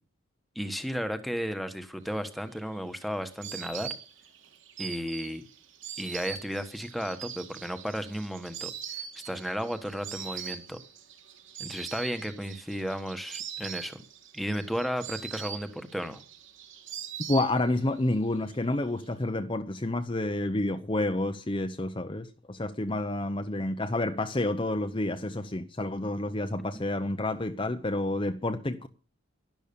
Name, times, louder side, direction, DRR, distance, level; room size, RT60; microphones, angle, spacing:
voice 1, 0.5-3.9 4.8-5.4 6.0-8.7 9.2-10.8 11.6-14.0 14.3-16.2 26.7-26.8, equal, ahead, 1.2 m, -34 dB
Insect, 2.3-18.0 18.2-19.0, right 8 dB, 65° right, 2.7 m, -42 dB
voice 2, 17.3-28.9, left 2 dB, 25° left, 0.8 m, -29 dB
12.0 x 12.0 x 6.9 m
head